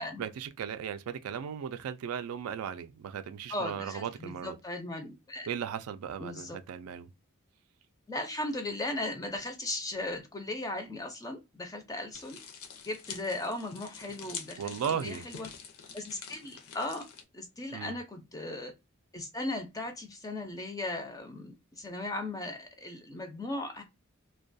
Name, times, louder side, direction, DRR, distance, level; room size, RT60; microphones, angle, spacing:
voice 1, 0.2-4.6 5.5-7.1 14.6-15.3 17.7-18.0, right 8 dB, 85° right, 0.3 m, -36 dB
voice 2, 3.5-5.5 6.2-6.6 8.1-12.4 12.8-15.5 15.9-17.1 17.3-18.7 19.1-23.8, left 2 dB, 15° left, 0.3 m, -37 dB
sound 1, 12.1-17.2, left 6 dB, 80° left, 0.6 m, -46 dB
2.2 x 2.2 x 2.5 m
head